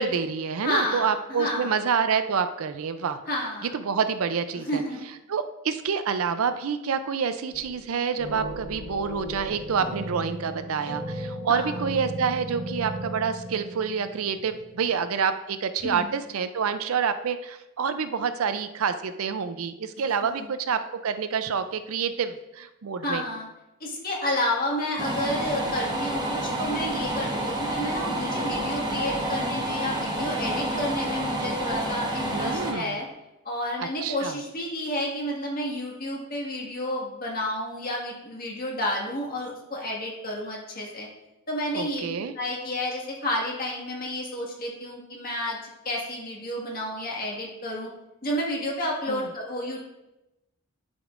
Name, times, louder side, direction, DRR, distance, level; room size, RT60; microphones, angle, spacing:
voice 1, 0.0-3.2 3.6-4.8 5.3-23.2 32.3-33.0 33.8-34.4 41.7-42.3 49.1-49.2, right 6 dB, 70° right, 10 dB, 0.5 m, -27 dB
voice 2, 0.6-1.7 3.3-3.7 4.5-5.1 9.8-10.0 11.5-11.8 15.8-16.1 20.3-20.5 23.0-23.5 23.8-33.1 33.5-41.1 41.5-47.9 48.2-49.8, left 1 dB, 40° left, -3 dB, 1.8 m, -31 dB
sound 1, 7.5-7.9 8.2-14.9, right 1 dB, 50° right, 1.5 m, -36 dB
sound 2, 25.0-32.7, right 1 dB, 20° right, 1.0 m, -29 dB
11.0 x 5.2 x 2.5 m, 0.96 s
head